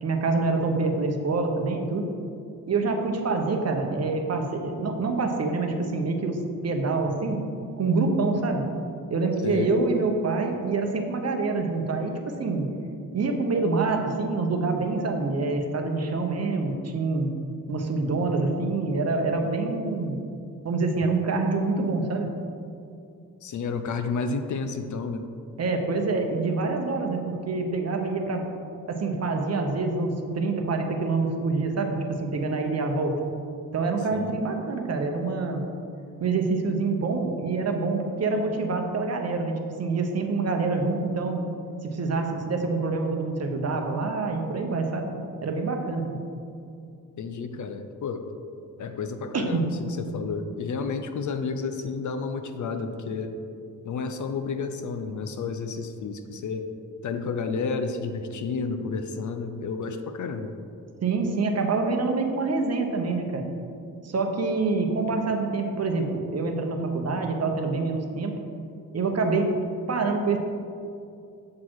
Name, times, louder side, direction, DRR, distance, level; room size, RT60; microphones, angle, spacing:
voice 1, 0.0-2.1 2.7-6.4 6.6-7.4 7.8-8.6 9.1-12.7 13.1-17.3 17.7-20.2 20.6-22.3 25.6-28.4 28.9-33.1 33.7-35.6 36.2-41.4 41.8-45.1 45.4-46.2 49.3-49.7 61.0-63.5 64.0-68.3 68.9-69.5 69.9-70.4, right 3 dB, 45° right, 4 dB, 0.8 m, -26 dB
voice 2, 23.4-25.3 34.1-34.4 47.2-48.3 48.8-49.7 50.0-53.3 53.8-56.7 57.0-60.5, left 4 dB, 55° left, 8 dB, 0.5 m, -31 dB
7.4 x 4.2 x 4.6 m, 2.5 s
cardioid pair, 105°, 36 cm